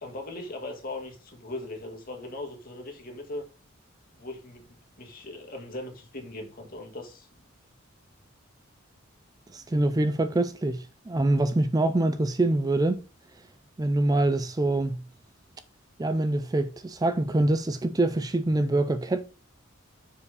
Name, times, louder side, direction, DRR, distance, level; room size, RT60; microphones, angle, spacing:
voice 1, 0.0-3.5 4.1-7.3, left 2 dB, 45° left, 2.0 m, -39 dB
voice 2, 9.5-13.0 13.8-15.0 16.0-19.2, right 2 dB, 20° right, 0.4 m, -25 dB
7.1 x 4.8 x 4.9 m
head